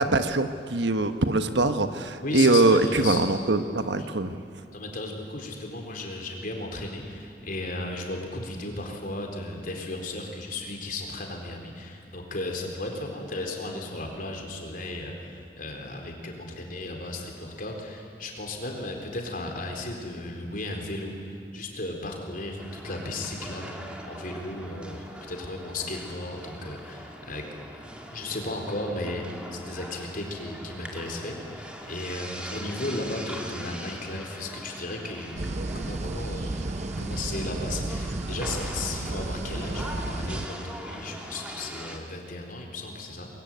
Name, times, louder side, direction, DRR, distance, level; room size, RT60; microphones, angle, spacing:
voice 1, 0.0-4.4, right 2 dB, 70° right, 9 dB, 1.3 m, -23 dB
voice 2, 2.2-3.3 4.0-4.1 4.7-23.7 24.1-27.4 28.1-35.5 35.7-43.3, left 2 dB, 50° left, 2 dB, 4.2 m, -35 dB
sound 1, 22.6-42.0, equal, 5° right, 2.4 m, -41 dB
sound 2, 35.4-40.5, right 2 dB, 40° right, 0.7 m, -32 dB
23.0 x 22.5 x 9.4 m, 2.4 s
head